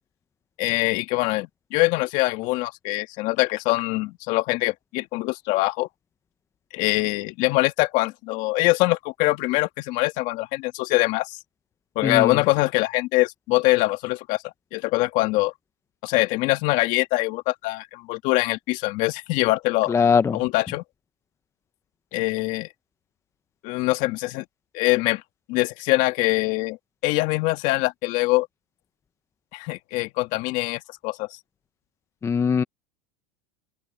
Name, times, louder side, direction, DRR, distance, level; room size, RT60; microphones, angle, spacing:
voice 1, 0.6-5.9 6.7-11.4 12.0-15.5 16.0-19.9 20.3-20.8 22.1-22.7 23.6-24.4 24.7-25.2 25.5-26.8 27.0-28.5 29.5-31.3, left 21 dB, 55° left, 2.1 m, -23 dB
voice 2, 19.9-20.4 32.2-32.6, left 6 dB, 20° left, 0.7 m, -20 dB
open air
supercardioid pair, 120°, 15 cm